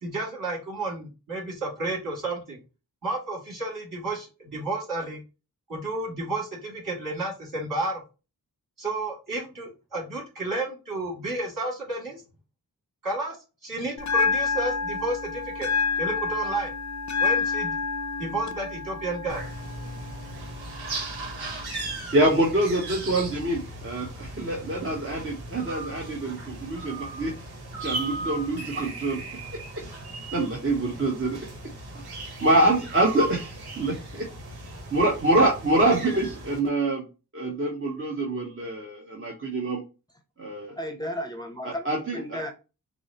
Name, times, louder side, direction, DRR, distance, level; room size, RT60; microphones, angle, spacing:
voice 1, 0.0-2.6 3.0-5.2 5.7-8.0 8.8-12.2 13.0-13.4 13.6-15.7 16.0-16.7 17.2-17.8 18.2-19.4, right 2 dB, 60° right, -2 dB, 2.3 m, -31 dB
Bell, 14.0-22.0, left 5 dB, 50° left, 0.6 m, -29 dB
sound 1, 19.3-36.6, right 2 dB, 90° right, 1.0 m, -37 dB
voice 2, 22.1-27.3 27.8-29.2 30.3-31.4 31.9-34.3 34.6-37.1 37.3-39.8 40.4-40.8 41.6-42.4, right 2 dB, 35° right, -2 dB, 1.0 m, -25 dB
voice 3, 40.7-42.5, equal, 10° left, 4 dB, 0.7 m, -34 dB
6.1 x 2.1 x 2.8 m, 0.31 s
cardioid pair, 50°, 37 cm